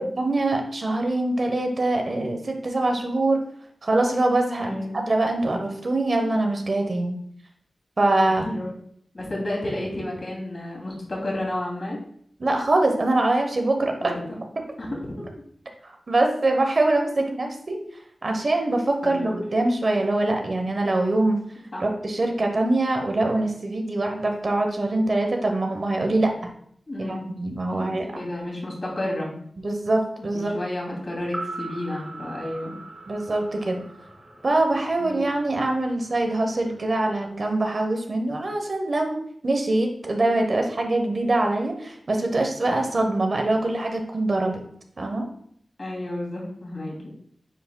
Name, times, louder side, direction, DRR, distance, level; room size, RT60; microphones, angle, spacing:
voice 1, 0.0-3.4 3.8-7.2 8.0-8.5 12.4-14.2 15.8-17.8 18.2-21.4 21.8-26.3 27.0-28.1 29.6-30.5 33.1-33.8 34.4-44.6 45.0-45.3, right 2 dB, 55° right, 3 dB, 1.0 m, -23 dB
voice 2, 4.6-4.9 8.3-8.7 9.1-12.0 14.0-14.4 14.8-15.2 19.0-19.3 21.7-21.9 26.9-27.3 27.7-29.3 30.2-32.8 35.0-35.2 45.8-46.9, left 1 dB, 45° left, -3 dB, 2.8 m, -31 dB
sound 1, 31.2-35.4 35.6-35.7, right 2 dB, 5° right, 1.4 m, -39 dB
9.1 x 4.8 x 2.3 m, 0.64 s
wide cardioid pair, 70°, 0 cm